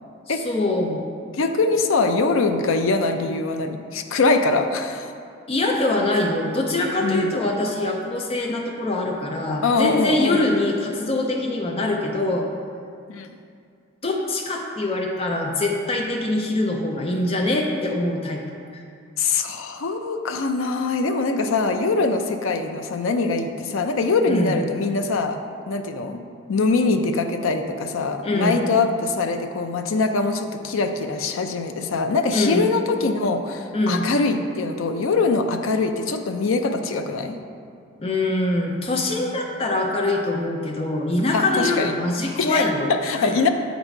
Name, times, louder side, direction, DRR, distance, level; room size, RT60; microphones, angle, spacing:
voice 1, 0.3-1.1 5.5-12.5 14.0-18.4 18.7-18.8 24.3-24.6 28.2-28.6 32.3-32.7 33.7-34.0 38.0-42.9 43.2-43.3, left 2 dB, 30° left, -1 dB, 0.5 m, -23 dB
voice 2, 1.3-5.1 7.0-7.3 9.6-10.5 13.1-13.3 19.2-25.4 25.7-26.2 26.5-37.4 41.3-41.9 42.4-43.5, left 3 dB, 75° left, 6 dB, 0.5 m, -23 dB
7.8 x 4.0 x 4.5 m, 2.3 s
head